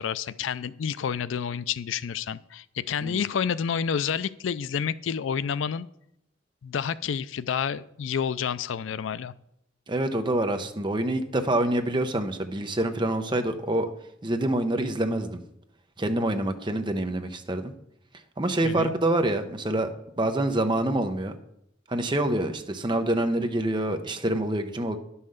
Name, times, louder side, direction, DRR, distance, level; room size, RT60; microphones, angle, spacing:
voice 1, 0.0-5.9 6.6-9.3 18.6-18.9, left 7 dB, 80° left, 17 dB, 0.4 m, -29 dB
voice 2, 9.9-13.9 14.2-15.4 16.0-17.7 18.4-19.9 20.2-21.3 21.9-25.0, right 1 dB, 25° right, 7 dB, 0.7 m, -26 dB
10.5 x 5.6 x 6.5 m, 0.78 s
head